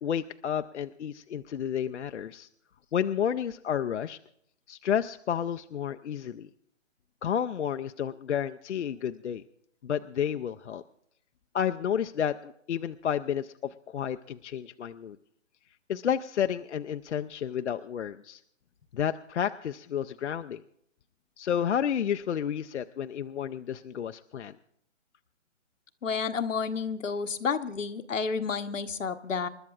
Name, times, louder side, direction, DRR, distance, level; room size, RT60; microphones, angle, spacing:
voice 1, 0.0-2.5 2.9-4.2 4.7-6.5 7.2-9.4 9.8-10.8 11.5-15.2 15.9-18.4 18.9-20.6 21.4-24.5, left 9 dB, 65° left, 8 dB, 0.5 m, -31 dB
voice 2, 26.0-29.5, left 5 dB, 85° left, 8 dB, 1.1 m, -30 dB
28.0 x 12.5 x 2.4 m, 0.71 s
hypercardioid pair, 165°, 37 cm